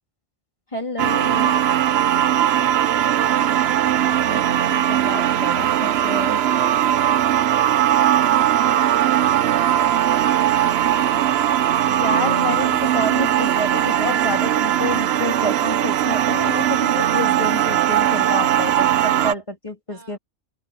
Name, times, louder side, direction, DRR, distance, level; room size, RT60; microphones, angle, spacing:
voice 1, 0.7-1.5 4.3-6.4 11.9-20.2, left 1 dB, 25° left, 3.3 m, -29 dB
sound 1, 1.0-19.3, right 11 dB, 65° right, 0.9 m, -19 dB
voice 2, 2.8-3.5 19.9-20.2, right 3 dB, 45° right, 4.2 m, -44 dB
omnidirectional pair, 1.2 m